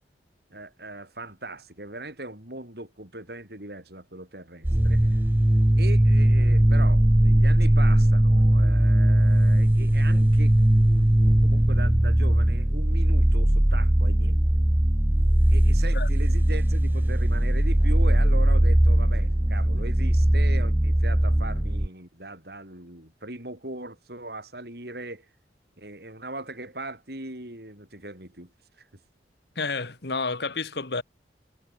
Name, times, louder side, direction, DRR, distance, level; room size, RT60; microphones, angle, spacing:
voice 1, 0.5-5.1 5.8-14.4 15.5-25.3 25.8-28.5 28.8-28.9, right 2 dB, 60° right, 5.4 m, -39 dB
sound 1, 4.6-21.9, right 1 dB, 10° right, 0.5 m, -20 dB
voice 2, 29.5-31.0, left 4 dB, 65° left, 1.5 m, -30 dB
head